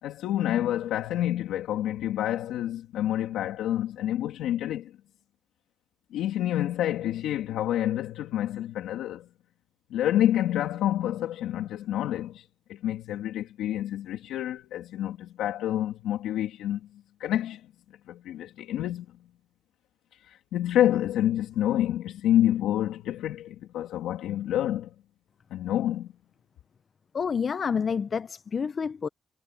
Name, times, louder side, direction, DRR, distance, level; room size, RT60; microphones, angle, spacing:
voice 1, 0.0-4.9 6.1-9.3 9.9-16.8 17.2-17.6 18.1-19.1 20.2-24.9 25.5-26.1, left 12 dB, 85° left, 2.5 m, -28 dB
voice 2, 27.1-29.1, left 6 dB, 45° left, 0.6 m, -28 dB
cardioid pair, 90°, 0 cm